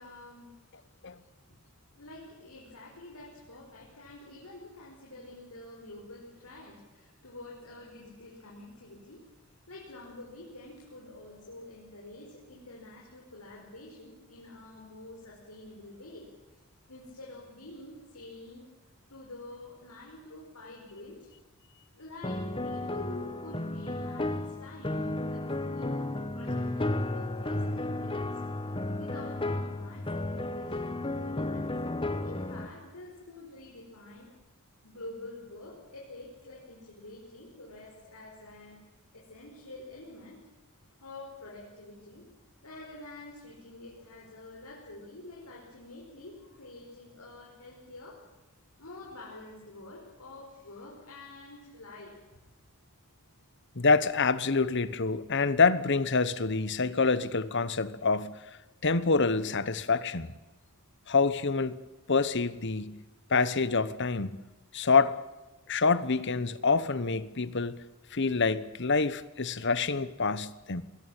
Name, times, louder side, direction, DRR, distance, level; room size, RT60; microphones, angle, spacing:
voice 1, 0.0-1.6 1.9-16.6 16.9-18.7 19.1-21.3 21.9-25.9 26.3-28.3 29.0-31.7 32.2-34.3 34.8-38.8 39.1-40.4 41.0-42.3 42.6-48.2 48.8-52.4, left 2 dB, 85° left, 5.3 m, -48 dB
sound 1, 22.2-32.7, left 2 dB, 25° left, 1.2 m, -33 dB
voice 2, 53.8-58.4 58.8-60.3 61.1-61.8 62.1-63.0 63.3-64.4 64.7-65.2 65.7-67.8 68.1-70.8, left 4 dB, 55° left, 1.1 m, -26 dB
22.0 x 17.5 x 9.0 m
head